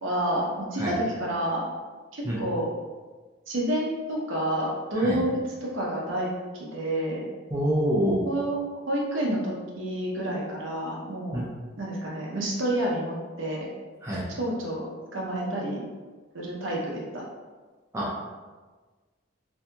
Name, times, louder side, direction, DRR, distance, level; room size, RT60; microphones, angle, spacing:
voice 1, 0.0-1.6 2.1-2.7 3.5-6.3 6.6-7.3 8.3-8.6 8.9-11.4 11.8-13.7 14.4-15.8 16.3-17.2, right 1 dB, 75° right, -3 dB, 0.6 m, -29 dB
voice 2, 7.5-8.2 11.3-11.5 14.0-14.3 17.9-18.3, equal, 15° right, -6 dB, 0.4 m, -26 dB
2.7 x 2.6 x 2.2 m, 1.3 s
head